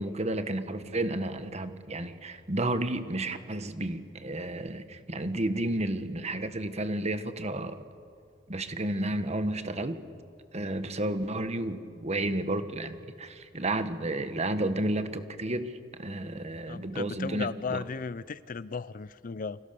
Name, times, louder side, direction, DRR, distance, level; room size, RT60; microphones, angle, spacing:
voice 1, 0.0-7.8 8.5-10.0 10.5-15.7 16.0-17.8, right 1 dB, 35° right, 10 dB, 1.4 m, -32 dB
voice 2, 16.7-19.6, left 5 dB, 45° left, 17 dB, 0.5 m, -35 dB
29.0 x 25.0 x 7.0 m, 2.3 s
head